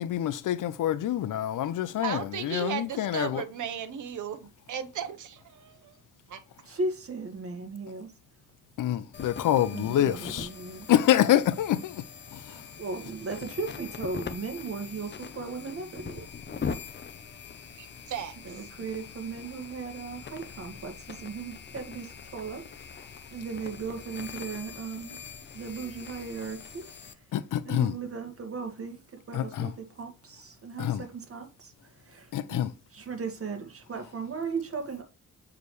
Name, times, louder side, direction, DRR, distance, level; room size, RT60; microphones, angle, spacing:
voice 1, 0.0-3.4 8.8-10.5 10.9-12.0 12.3-12.7 27.3-28.0 29.3-29.7 30.8-31.0 32.3-32.7, left 12 dB, 90° left, 0.6 m, -26 dB
voice 2, 2.0-6.0 6.3-6.4 17.8-18.6, right 9 dB, 75° right, 1.0 m, -36 dB
voice 3, 6.6-8.1 9.6-10.9 12.5-16.3 18.4-25.2 25.5-26.8 27.7-32.6 32.9-35.0, right 4 dB, 45° right, 1.7 m, -37 dB
sound 1, 9.1-27.1, left 6 dB, 35° left, 0.6 m, -42 dB
6.9 x 4.8 x 3.1 m
wide cardioid pair, 135°, 30 cm